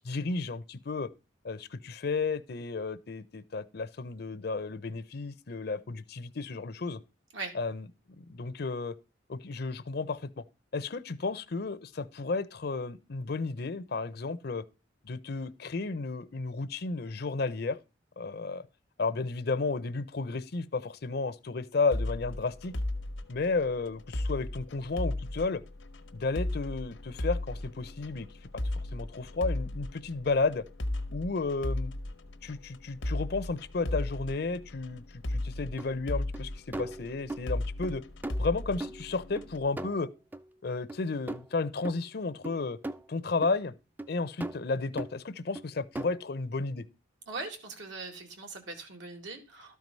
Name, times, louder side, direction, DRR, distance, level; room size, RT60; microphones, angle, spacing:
voice 1, 0.0-1.1 1.4-7.0 7.5-7.9 8.2-8.9 9.3-10.4 10.7-14.6 15.0-17.8 18.2-18.7 19.0-22.7 23.3-25.6 26.1-28.3 28.9-30.6 31.1-31.9 32.4-38.0 38.4-40.1 40.6-42.8 43.1-43.7 44.1-46.8, left 3 dB, 55° left, 0.6 m, -33 dB
sound 1, 21.9-39.7, left 1 dB, 90° left, 1.0 m, -36 dB
sound 2, 35.8-35.9 36.3-36.4 36.7-37.5 37.8-37.9 38.2-39.5 39.8-40.5 40.9-41.0 41.3-41.5 41.8-42.0 42.4-43.1 43.4-43.5 44.0-44.1 44.4-44.7 45.0-45.1 45.5-45.7 45.9-46.3, right 1 dB, 10° right, 0.4 m, -39 dB
voice 2, 47.3-49.8, right 3 dB, 80° right, 2.2 m, -40 dB
12.5 x 4.7 x 5.4 m
head